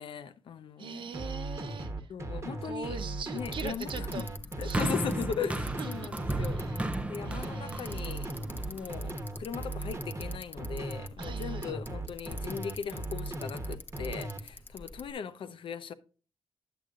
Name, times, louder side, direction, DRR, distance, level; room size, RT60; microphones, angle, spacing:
voice 1, 0.0-1.0 2.1-3.0 3.3-4.2 4.6-6.6 7.1-8.3 8.7-15.9, left 7 dB, 65° left, 0.7 m, -38 dB
voice 2, 0.8-2.1 2.7-4.3 4.6-4.9 5.8-6.9 7.2-8.6 11.2-11.7, right 6 dB, 60° right, 1.0 m, -42 dB
sound 1, 1.1-14.4, right 2 dB, 30° right, 1.1 m, -37 dB
Bicycle, 3.4-15.1, left 2 dB, 20° left, 0.8 m, -47 dB
sound 2, 4.7-9.1 9.9-10.0, right 1 dB, 15° right, 0.6 m, -35 dB
10.5 x 7.9 x 2.5 m
wide cardioid pair, 125°, 9 cm